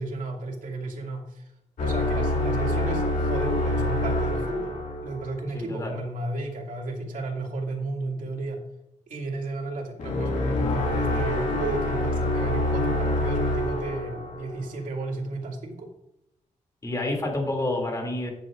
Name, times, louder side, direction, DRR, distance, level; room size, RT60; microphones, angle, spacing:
voice 1, 0.0-1.5 1.8-8.6 9.1-15.9, right 2 dB, 85° right, 0 dB, 2.4 m, -33 dB
sound 1, 1.8-5.5 10.0-14.8, left 1 dB, 70° left, 2.3 m, -26 dB
voice 2, 5.5-5.9 16.8-18.3, left 2 dB, 25° left, 1 dB, 2.7 m, -28 dB
13.5 x 9.3 x 2.5 m, 0.83 s
wide cardioid pair, 175°, 13 cm